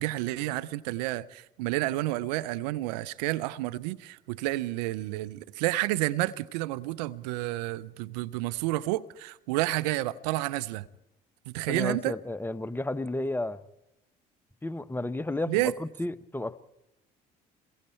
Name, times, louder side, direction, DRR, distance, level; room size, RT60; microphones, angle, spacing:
voice 1, 0.0-10.9 11.5-12.2 15.5-15.7, right 17 dB, 85° right, 0.6 m, -30 dB
voice 2, 11.7-13.6 14.6-16.6, left 2 dB, 10° left, 0.9 m, -32 dB
27.5 x 22.0 x 4.4 m
hypercardioid pair, 60°, 21 cm